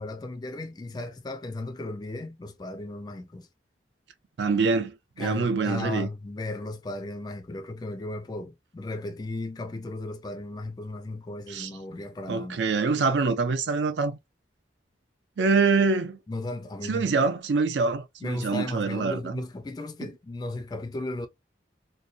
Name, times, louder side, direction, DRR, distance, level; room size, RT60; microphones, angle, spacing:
voice 1, 0.0-3.5 5.2-12.6 16.3-17.1 18.2-21.3, left 2 dB, 20° left, 0.3 m, -35 dB
voice 2, 4.4-6.1 11.5-11.7 12.3-14.2 15.4-16.2 16.9-19.4, right 4 dB, 75° right, 0.5 m, -25 dB
2.7 x 2.1 x 2.3 m
head